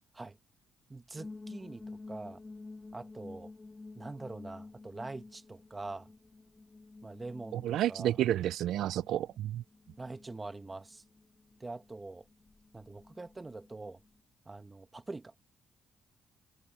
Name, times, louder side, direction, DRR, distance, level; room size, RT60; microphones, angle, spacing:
voice 1, 0.9-2.4 2.9-3.5 3.9-6.1 7.0-8.2 10.0-11.0 11.6-12.3 12.7-14.0 14.4-15.3, right 3 dB, 20° right, 1.5 m, -44 dB
sound 1, 1.2-14.2, left 3 dB, 25° left, 2.1 m, -51 dB
voice 2, 7.5-9.6, right 12 dB, 80° right, 0.3 m, -30 dB
cardioid pair, 90°, 0 cm